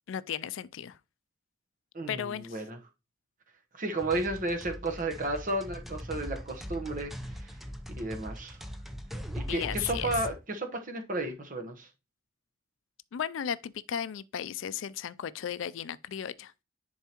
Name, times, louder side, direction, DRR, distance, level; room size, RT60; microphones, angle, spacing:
voice 1, 0.1-1.0 2.1-2.6 9.5-10.1 13.1-16.5, left 9 dB, 70° left, 0.4 m, -35 dB
voice 2, 1.9-2.8 3.7-7.1 7.4-7.5 8.0-8.6 9.3-11.9, right 2 dB, 40° right, 1.0 m, -33 dB
sound 1, 4.0-10.3, equal, ahead, 0.6 m, -40 dB
10.5 x 4.5 x 2.9 m
head